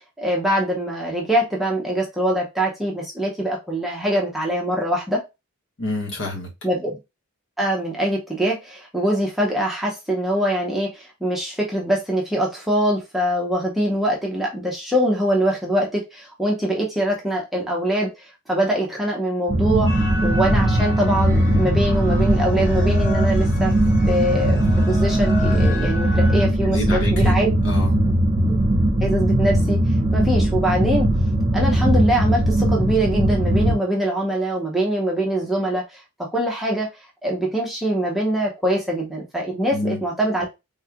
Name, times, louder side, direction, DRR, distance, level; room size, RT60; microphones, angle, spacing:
voice 1, 0.2-5.2 6.6-7.0 7.6-18.1 18.5-19.9 20.2-23.7 24.1-27.5 29.0-29.8 30.1-31.1 31.5-36.0 36.3-36.9 37.2-40.4, right 1 dB, ahead, -3 dB, 0.8 m, -23 dB
voice 2, 5.8-6.5 26.4-27.4 27.6-27.9 39.7-40.0, left 2 dB, 55° left, 0 dB, 1.2 m, -28 dB
sound 1, 19.5-33.7, right 1 dB, 30° right, 0.9 m, -19 dB
sound 2, 19.9-26.5, equal, 90° left, 2.3 m, -31 dB
3.6 x 3.1 x 2.2 m, 0.24 s
head